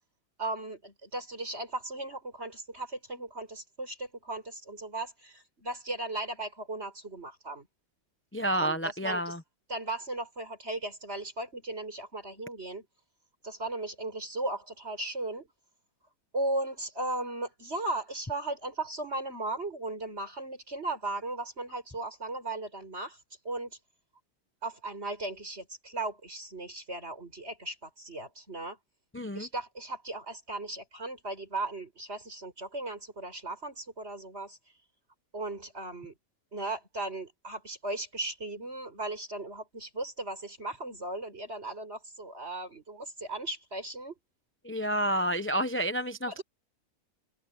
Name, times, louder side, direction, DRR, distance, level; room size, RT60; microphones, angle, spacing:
voice 1, 0.4-7.7 8.5-8.8 9.0-9.3 9.7-12.9 13.4-15.5 16.3-23.2 23.4-23.8 24.6-28.8 29.3-34.6 35.3-36.1 36.5-44.1 46.3-46.4, right 2 dB, 45° right, 6.9 m, -37 dB
voice 2, 8.3-9.4 29.1-29.5 44.6-46.4, right 1 dB, 10° left, 0.6 m, -29 dB
omnidirectional pair, 1.5 m